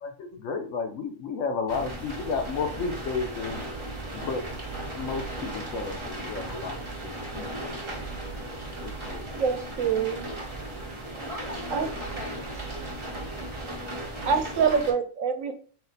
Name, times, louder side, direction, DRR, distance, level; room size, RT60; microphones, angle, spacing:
voice 1, 0.0-3.6 4.1-4.5 4.9-6.8 7.0-8.1 8.8-9.3 14.6-14.7, left 5 dB, 75° left, 6 dB, 1.0 m, -33 dB
sound 1, 1.7-14.9, right 1 dB, 25° right, 0.9 m, -36 dB
voice 2, 9.1-10.3 11.7-11.9 14.2-15.5, right 6 dB, 90° right, 7 dB, 1.0 m, -26 dB
voice 3, 11.3-13.5, left 1 dB, 55° left, -1 dB, 0.4 m, -42 dB
4.1 x 2.1 x 3.9 m, 0.42 s
omnidirectional pair, 1.3 m